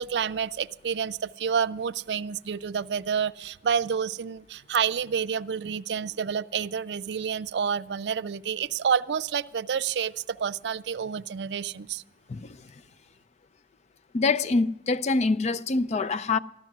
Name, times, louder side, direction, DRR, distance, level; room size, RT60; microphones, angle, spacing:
voice 1, 0.0-12.0, right 7 dB, 75° right, 0.4 m, -29 dB
voice 2, 12.3-12.7 14.1-16.4, left 3 dB, 40° left, 0.4 m, -25 dB
14.5 x 12.0 x 6.0 m
head